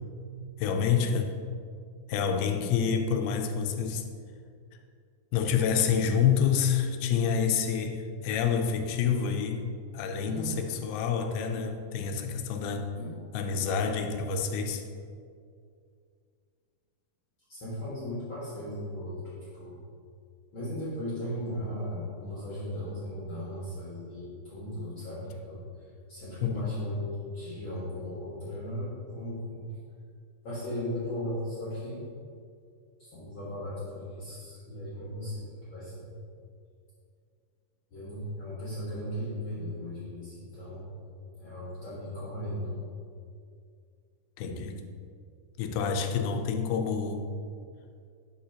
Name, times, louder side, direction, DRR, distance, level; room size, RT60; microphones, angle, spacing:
voice 1, 0.6-1.4 2.1-4.1 5.3-9.7 9.9-12.9 13.3-14.8 26.4-26.9 44.4-44.8 45.6-47.3, left 7 dB, 85° left, 5 dB, 2.4 m, -28 dB
voice 2, 10.2-10.7 12.9-13.2 17.5-19.7 20.5-25.6 26.1-29.6 30.4-32.0 33.0-36.1 37.9-40.9 41.4-42.7, equal, 50° left, -9 dB, 1.6 m, -37 dB
10.0 x 4.8 x 2.8 m, 2.3 s
omnidirectional pair, 4.2 m